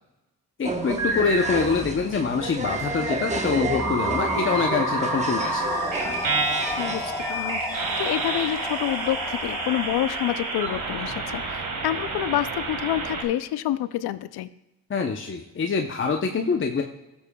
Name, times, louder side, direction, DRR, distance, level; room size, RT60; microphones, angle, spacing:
voice 1, 0.6-5.6 14.9-16.8, left 5 dB, 30° left, 2 dB, 0.7 m, -25 dB
sound 1, 0.6-7.3, right 2 dB, 20° right, 0.9 m, -31 dB
sound 2, 0.8-1.8 2.6-13.2, right 2 dB, 55° right, 1.9 m, -29 dB
sound 3, 5.3-11.2, left 1 dB, 5° left, 1.6 m, -35 dB
voice 2, 6.8-14.5, left 13 dB, 75° left, 14 dB, 0.5 m, -28 dB
13.5 x 7.1 x 2.3 m, 0.96 s
cardioid pair, 70°, 38 cm